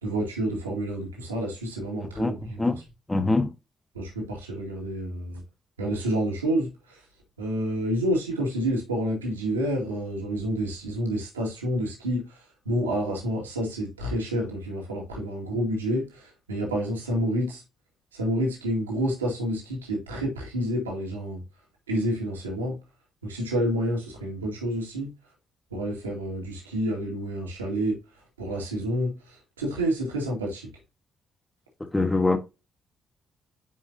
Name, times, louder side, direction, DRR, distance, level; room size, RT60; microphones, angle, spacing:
voice 1, 0.0-2.7 3.9-5.4 5.8-7.0 7.4-12.2 12.7-16.2 16.5-17.6 18.1-21.4 21.9-22.8 23.2-25.1 25.7-28.0 28.4-29.1 29.6-30.7, equal, 80° right, 2.1 m, -28 dB
voice 2, 2.2-2.8 3.1-3.5 31.9-32.4, left 2 dB, 15° left, 1.5 m, -23 dB
9.4 x 5.1 x 2.8 m
figure-of-eight pair, 40°, 0 cm